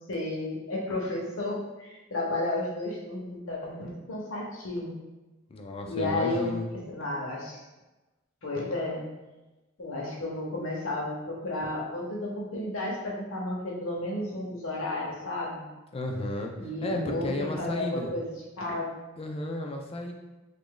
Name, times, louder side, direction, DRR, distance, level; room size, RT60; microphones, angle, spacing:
voice 1, 0.1-5.0 5.8-7.6 8.4-9.1 9.8-15.6 16.6-18.2 18.6-19.0, left 2 dB, 80° left, -3 dB, 0.8 m, -32 dB
voice 2, 5.5-6.6 15.9-16.5 16.8-18.1 19.2-20.1, left 1 dB, 30° left, 2 dB, 0.4 m, -33 dB
3.0 x 2.5 x 3.7 m, 1.1 s
head